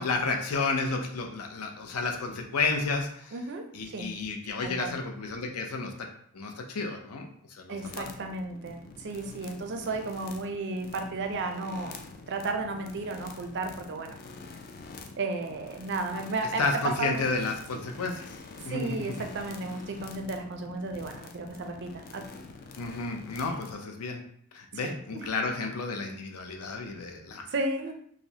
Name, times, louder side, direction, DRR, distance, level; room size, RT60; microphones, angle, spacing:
voice 1, 0.0-3.3 3.7-6.1 6.3-8.1 16.6-18.4 18.6-19.1 22.8-24.2 24.5-27.5, left 3 dB, 85° left, 3 dB, 0.6 m, -31 dB
voice 2, 3.3-4.1 4.6-4.9 7.7-12.0 12.3-14.2 15.2-17.2 18.6-22.2 24.7-25.6 27.5-28.0, right 3 dB, 50° right, 5 dB, 0.4 m, -34 dB
sound 1, 7.8-23.8, left 4 dB, 45° left, 0.3 m, -46 dB
4.9 x 2.1 x 2.8 m, 0.65 s
head